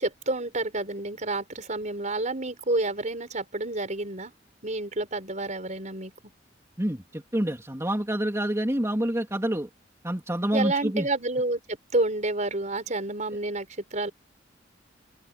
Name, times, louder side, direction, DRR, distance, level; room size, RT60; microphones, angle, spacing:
voice 1, 0.0-4.3 4.6-6.1 10.5-14.1, right 2 dB, 40° right, 4.9 m, -29 dB
voice 2, 6.8-9.7 10.0-11.1, right 1 dB, 15° right, 3.1 m, -27 dB
open air
head